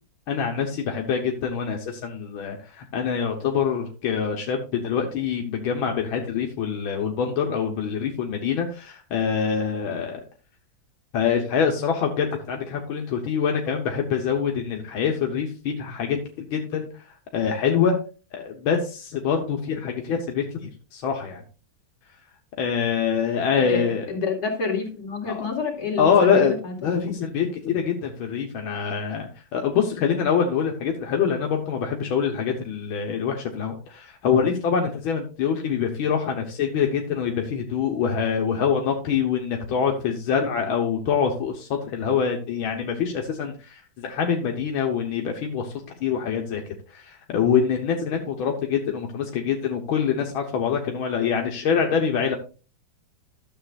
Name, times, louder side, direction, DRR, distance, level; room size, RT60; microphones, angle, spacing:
voice 1, 0.3-10.2 11.1-16.9 17.3-18.0 18.3-21.4 22.6-24.1 25.3-25.5 26.0-26.5 26.8-45.7 46.0-52.4, left 7 dB, 80° left, 2 dB, 1.8 m, -25 dB
voice 2, 23.5-26.9, left 5 dB, 50° left, -1 dB, 2.8 m, -28 dB
12.5 x 7.3 x 2.5 m, 0.35 s
omnidirectional pair, 2.2 m